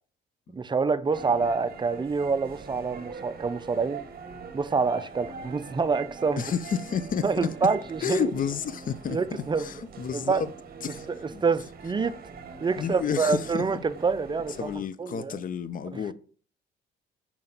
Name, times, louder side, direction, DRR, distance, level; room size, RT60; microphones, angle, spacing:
voice 1, 0.5-4.0 4.5-6.4 7.2-8.3 9.1-9.7 10.1-10.4 11.2-12.1 12.6-14.6 15.0-15.4 15.9-16.0, right 4 dB, 25° right, 0.4 m, -26 dB
sound 1, 1.1-14.8, right 5 dB, 50° right, 1.0 m, -43 dB
voice 2, 6.4-7.5 8.0-9.2 9.6-10.5 10.8-11.4 12.8-13.8 14.6-16.1, left 7 dB, 45° left, 0.5 m, -31 dB
5.7 x 4.3 x 3.9 m
cardioid pair, 90°, 20 cm